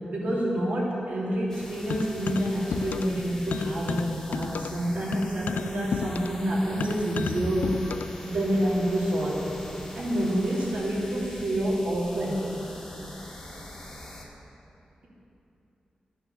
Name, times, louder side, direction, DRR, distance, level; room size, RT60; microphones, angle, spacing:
voice 1, 0.1-7.7 8.2-9.5 9.9-12.5, right 1 dB, 80° right, -5 dB, 3.0 m, -28 dB
sound 1, 1.5-14.2, left 1 dB, 20° left, 1.7 m, -43 dB
sound 2, 1.9-3.2 3.5-8.2, left 6 dB, 90° left, 0.3 m, -33 dB
11.5 x 8.9 x 6.8 m, 2.8 s
wide cardioid pair, 165°, 3 cm